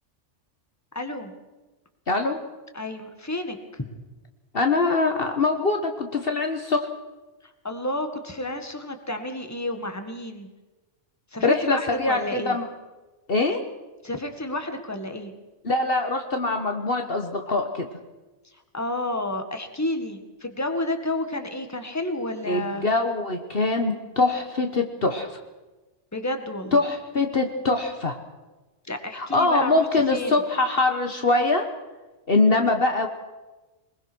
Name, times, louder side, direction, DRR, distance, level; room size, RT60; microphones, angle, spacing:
voice 1, 1.0-1.3 2.7-3.9 7.6-10.5 11.3-12.6 14.0-15.3 18.7-22.9 26.1-26.8 28.9-29.8 30.1-30.4, left 1 dB, 15° left, 6 dB, 1.9 m, -30 dB
voice 2, 2.1-2.4 4.5-6.9 11.4-12.6 13.3-13.7 15.6-17.9 22.5-25.3 26.7-28.2 29.1-31.7 32.3-33.1, left 3 dB, 50° left, 5 dB, 1.6 m, -23 dB
23.0 x 21.0 x 6.3 m, 1.1 s
omnidirectional pair, 1.3 m